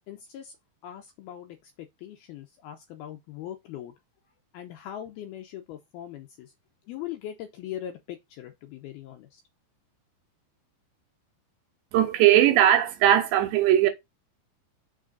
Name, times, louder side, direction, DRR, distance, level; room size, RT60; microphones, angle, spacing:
voice 1, 0.1-0.6 0.8-3.9 4.5-6.5 6.9-9.4, left 11 dB, 85° left, 2.2 m, -40 dB
voice 2, 11.9-13.9, right 12 dB, 75° right, 3.1 m, -19 dB
6.5 x 5.0 x 3.9 m
omnidirectional pair, 5.2 m